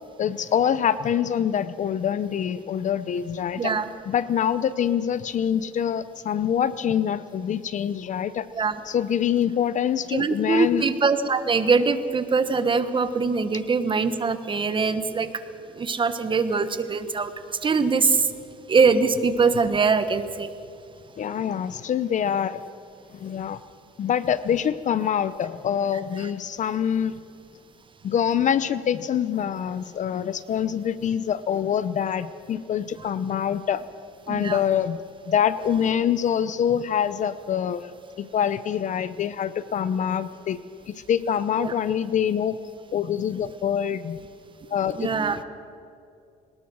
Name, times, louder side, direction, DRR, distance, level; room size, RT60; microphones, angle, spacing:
voice 1, 0.2-3.7 4.1-8.5 8.9-10.9 21.2-22.6 23.1-23.6 24.0-27.2 28.0-33.9 34.3-35.0 35.2-37.9 38.2-40.6 40.9-42.6 42.9-44.2 44.7-45.1, left 9 dB, 45° left, 15 dB, 0.7 m, -25 dB
voice 2, 3.6-3.9 8.5-8.8 10.1-15.3 15.8-17.3 17.6-18.3 18.7-20.5 26.2-26.3 34.3-34.6 41.6-41.7 45.0-45.4, right 4 dB, 30° right, 11 dB, 1.3 m, -22 dB
23.0 x 19.5 x 6.3 m, 2.4 s
cardioid pair, 110°, 17 cm